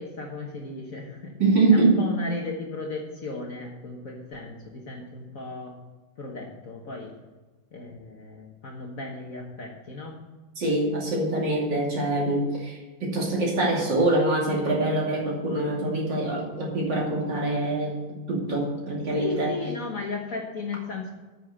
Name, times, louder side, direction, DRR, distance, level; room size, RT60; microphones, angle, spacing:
voice 1, 0.0-1.3 1.7-5.7 6.2-7.1 7.7-10.2 19.2-21.1, left 3 dB, 45° left, 0 dB, 1.5 m, -35 dB
voice 2, 1.4-2.0 10.6-18.0 18.3-19.5, right 2 dB, 55° right, -3 dB, 3.3 m, -24 dB
9.0 x 6.3 x 7.6 m, 1.2 s
omnidirectional pair, 2.4 m